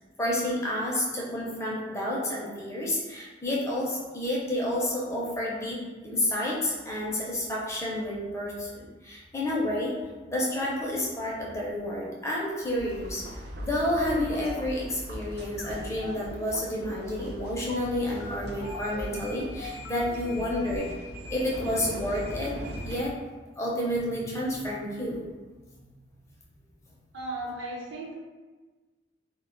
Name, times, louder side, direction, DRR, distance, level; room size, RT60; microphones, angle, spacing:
voice 1, 0.2-5.8 6.0-9.9 10.3-20.9 21.3-23.1 23.6-25.2, left 1 dB, 15° left, -4 dB, 0.4 m, -30 dB
sound 1, 12.8-23.0, equal, 55° right, 0.3 m, -40 dB
sound 2, 15.6-20.8, left 3 dB, 75° left, 0.4 m, -42 dB
voice 2, 27.1-28.1, right 1 dB, 80° right, -4 dB, 0.8 m, -35 dB
2.1 x 2.0 x 3.6 m, 1.3 s
head